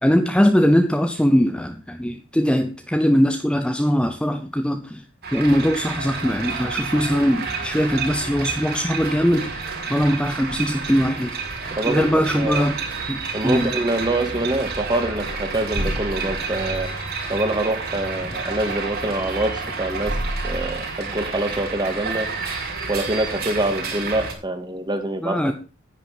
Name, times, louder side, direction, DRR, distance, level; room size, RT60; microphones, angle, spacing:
voice 1, 0.0-5.0 5.3-11.3 11.6-12.8 13.1-13.7 25.2-25.5, equal, 5° left, 0.7 m, -21 dB
sound 1, 5.2-24.3, right 4 dB, 50° right, 5.2 m, -29 dB
voice 2, 11.8-12.6 13.3-16.9 17.3-20.2 20.4-22.3 22.9-25.5, right 1 dB, 20° right, 2.0 m, -25 dB
10.0 x 9.3 x 5.6 m
head